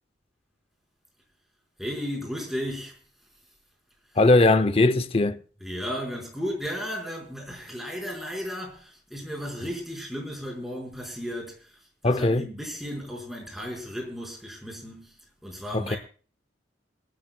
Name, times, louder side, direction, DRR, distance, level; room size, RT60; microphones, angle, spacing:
voice 1, 1.8-3.0 5.6-15.2 15.4-16.0, equal, ahead, 4.9 m, -34 dB
voice 2, 4.2-5.4 12.0-12.5 15.7-16.0, left 2 dB, 30° left, 0.6 m, -20 dB
27.5 x 13.0 x 2.3 m
head